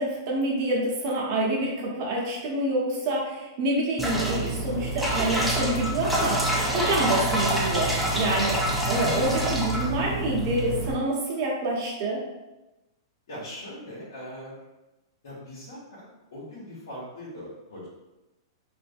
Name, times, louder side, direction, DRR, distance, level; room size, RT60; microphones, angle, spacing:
voice 1, 0.0-6.4 6.7-8.6 8.9-12.2, right 1 dB, 45° right, -4 dB, 0.8 m, -27 dB
sound 1, 4.0-10.9, right 1 dB, ahead, 0.4 m, -26 dB
voice 2, 13.3-14.7 15.2-17.9, equal, 75° left, -8 dB, 0.9 m, -41 dB
2.4 x 2.1 x 2.5 m, 1.0 s
hypercardioid pair, 145°, 2 cm